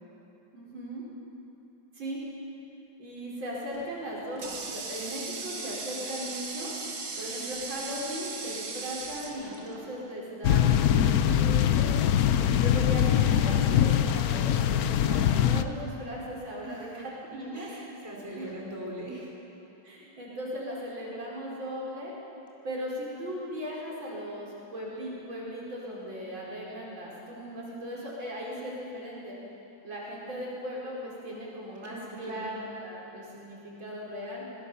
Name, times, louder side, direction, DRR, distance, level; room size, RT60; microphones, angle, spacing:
voice 1, 0.5-1.0 1.9-2.2 3.0-6.7 7.2-11.9 12.5-17.7 18.4-18.5 19.8-22.1 22.6-29.4 29.8-34.4, equal, 80° right, -5 dB, 5.6 m, -38 dB
Water tap faucet, 3.7-10.2, right 4 dB, 55° right, 2.4 m, -38 dB
sound 1, 10.4-15.6, left 10 dB, 65° left, 1.0 m, -23 dB
voice 2, 12.3-12.8 16.6-17.0 17.5-19.3 31.8-32.6, right 1 dB, 10° right, -3 dB, 4.3 m, -42 dB
24.5 x 19.0 x 7.0 m, 3.0 s
omnidirectional pair, 2.1 m